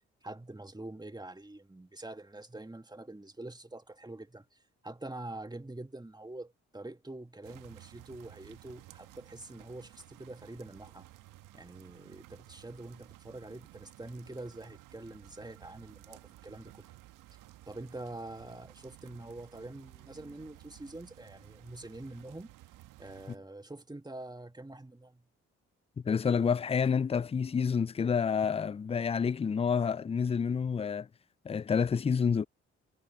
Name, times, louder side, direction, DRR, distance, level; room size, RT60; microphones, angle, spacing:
voice 1, 0.2-11.1 11.5-16.9 17.7-22.5 23.0-25.3, right 2 dB, 15° right, 2.2 m, -45 dB
sound 1, 7.4-23.4, right 16 dB, 75° right, 1.5 m, -55 dB
voice 2, 26.0-31.1 31.4-32.5, left 6 dB, 20° left, 0.4 m, -28 dB
hypercardioid pair, 40°, 32 cm